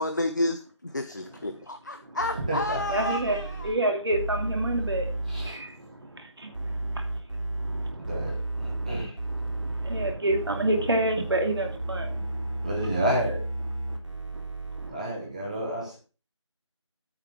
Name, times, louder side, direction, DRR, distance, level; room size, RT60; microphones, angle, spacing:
voice 1, 0.0-3.7, left 1 dB, 35° left, 0.7 m, -30 dB
sound 1, 2.2-3.7 4.1-5.5 6.5-14.9, right 2 dB, 70° right, 3.4 m, -33 dB
voice 2, 2.3-2.8 5.3-5.6 8.0-9.2 12.6-13.4 14.9-16.0, right 1 dB, 15° right, 1.2 m, -30 dB
voice 3, 2.9-7.0 7.5-12.7 13.9-14.0 14.3-14.4 14.8-15.1, right 1 dB, 55° right, 2.5 m, -30 dB
9.5 x 7.5 x 4.7 m
figure-of-eight pair, 170°, 16 cm